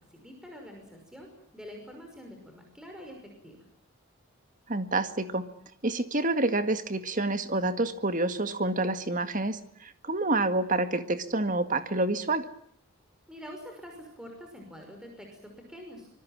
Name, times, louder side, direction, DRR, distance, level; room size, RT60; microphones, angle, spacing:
voice 1, 0.1-3.6 13.3-16.1, equal, 5° right, 2 dB, 5.8 m, -46 dB
voice 2, 4.7-5.5 5.8-12.5, right 2 dB, 35° right, 9 dB, 1.9 m, -28 dB
25.5 x 22.5 x 7.5 m, 0.70 s
head